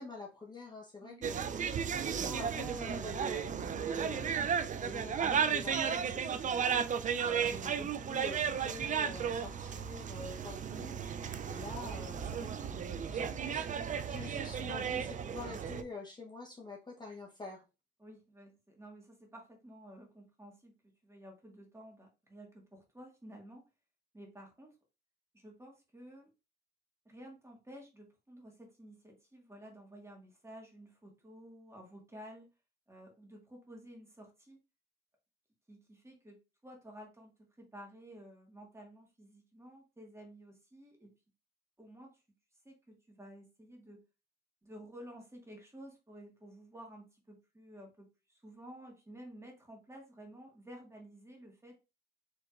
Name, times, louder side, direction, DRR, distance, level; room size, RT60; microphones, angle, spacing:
voice 1, 0.0-1.4 2.0-17.6, left 3 dB, 20° left, -2 dB, 0.9 m, -47 dB
sound 1, 1.2-15.8, right 7 dB, 40° right, 0.4 m, -34 dB
voice 2, 18.0-20.7 21.0-23.6 24.1-24.7 25.3-26.3 27.1-32.5 32.9-34.6 35.7-37.3 37.6-41.1 41.8-42.1 42.7-44.0 44.6-51.8, equal, 15° right, 1 dB, 1.7 m, -52 dB
4.6 x 3.4 x 2.5 m, 0.28 s
cardioid pair, 90°, 20 cm